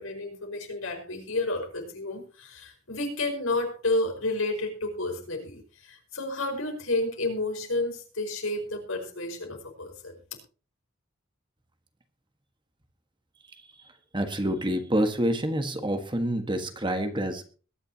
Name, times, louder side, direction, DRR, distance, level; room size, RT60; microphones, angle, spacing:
voice 1, 0.0-10.1, left 2 dB, 75° left, 3 dB, 5.1 m, -31 dB
voice 2, 14.1-17.4, right 1 dB, 25° right, 7 dB, 1.5 m, -27 dB
21.5 x 10.5 x 2.9 m, 0.37 s
head